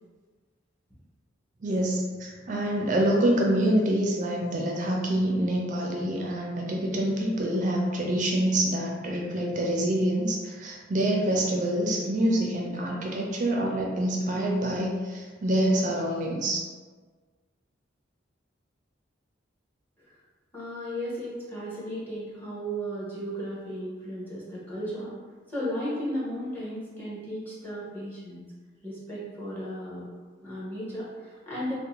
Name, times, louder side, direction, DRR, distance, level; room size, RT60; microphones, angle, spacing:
voice 1, 1.6-16.6, right 1 dB, 40° right, -1 dB, 0.4 m, -26 dB
voice 2, 20.5-25.1 25.5-28.4 28.8-30.1 30.4-31.7, equal, 10° left, -9 dB, 0.7 m, -35 dB
2.5 x 2.0 x 2.8 m, 1.4 s
head